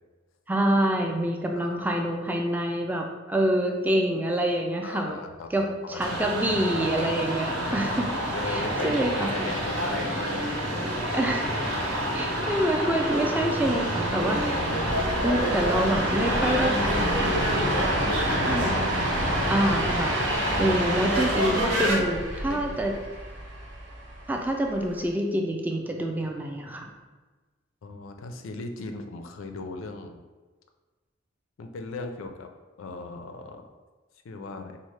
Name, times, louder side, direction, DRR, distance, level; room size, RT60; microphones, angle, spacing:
voice 1, 0.5-5.2 5.5-8.1 8.5-9.5 11.1-11.5 12.1-14.6 15.2-16.8 18.5-18.8 19.5-20.3 20.6-22.9 24.3-26.9, right 1 dB, 10° right, 2 dB, 0.3 m, -26 dB
voice 2, 1.6-1.9 4.8-6.2 7.1-7.2 8.2-11.1 13.6-14.0 15.5-18.6 20.4-20.8 21.8-23.0 27.8-30.2 31.6-32.5 32.8-33.7 34.2-34.8, left 3 dB, 90° left, 6 dB, 0.4 m, -37 dB
sound 1, 6.0-22.0, equal, 85° right, 0.9 m, -28 dB
sound 2, 13.1-25.1, right 1 dB, 65° right, 0.6 m, -32 dB
4.2 x 2.1 x 3.1 m, 1.3 s
head